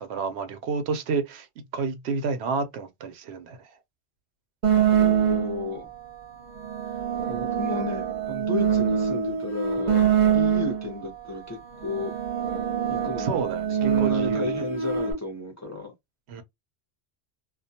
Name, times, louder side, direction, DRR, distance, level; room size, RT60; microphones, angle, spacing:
voice 1, 0.0-3.7 13.2-14.6 16.3-16.4, right 5 dB, 80° right, 0.8 m, -30 dB
sound 1, 4.6-5.7 6.5-11.0 11.7-15.1, right 8 dB, 45° right, 0.8 m, -24 dB
voice 2, 4.9-5.9 7.3-10.1 10.3-12.1 12.9-13.5 13.8-15.9, left 3 dB, 20° left, 0.6 m, -33 dB
2.3 x 2.2 x 2.7 m
omnidirectional pair, 1.1 m